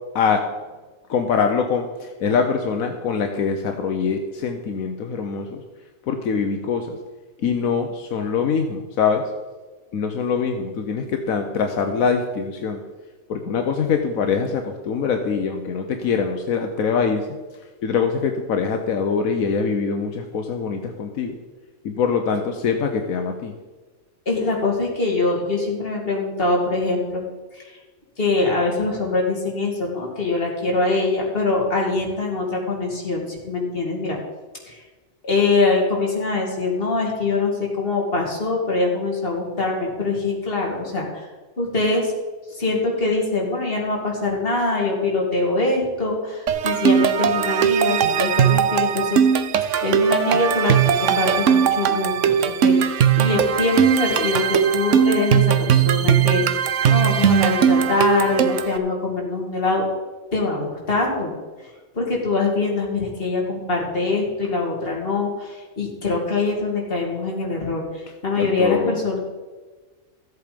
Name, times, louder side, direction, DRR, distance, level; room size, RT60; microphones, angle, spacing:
voice 1, 0.1-0.5 1.1-5.6 6.1-7.0 7.4-9.3 9.9-12.8 13.3-17.3 17.8-21.4 21.8-23.5 68.4-69.0, left 6 dB, 80° left, 5 dB, 1.3 m, -23 dB
voice 2, 24.3-27.2 27.5-27.8 28.2-34.2 34.7-34.8 35.2-41.3 41.6-42.1 42.5-49.3 49.8-59.8 60.3-61.3 61.9-69.2, left 3 dB, 40° left, -2 dB, 2.8 m, -23 dB
sound 1, 46.5-58.8, right 8 dB, 65° right, 1.0 m, -19 dB
14.0 x 8.1 x 5.2 m, 1.3 s
omnidirectional pair, 1.4 m